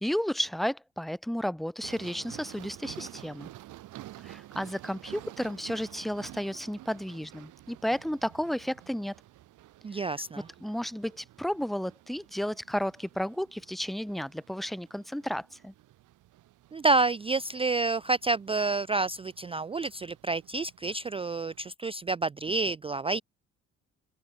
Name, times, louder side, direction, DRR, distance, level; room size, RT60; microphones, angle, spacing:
voice 1, 0.0-3.5 4.2-9.1 10.6-15.7, equal, ahead, 1.1 m, -32 dB
sound 1, 1.8-21.7, right 15 dB, 85° right, 5.4 m, -51 dB
voice 2, 9.8-10.5 16.7-23.2, right 3 dB, 20° right, 0.4 m, -29 dB
open air
cardioid pair, 90°, 30 cm